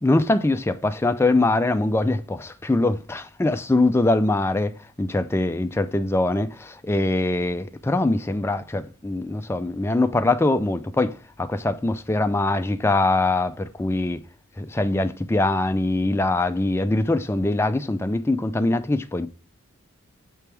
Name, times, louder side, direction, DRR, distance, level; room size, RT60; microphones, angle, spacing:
voice 1, 0.0-4.7 5.0-14.2 14.6-19.3, left 2 dB, 10° left, 0.3 m, -23 dB
6.8 x 3.4 x 4.5 m
head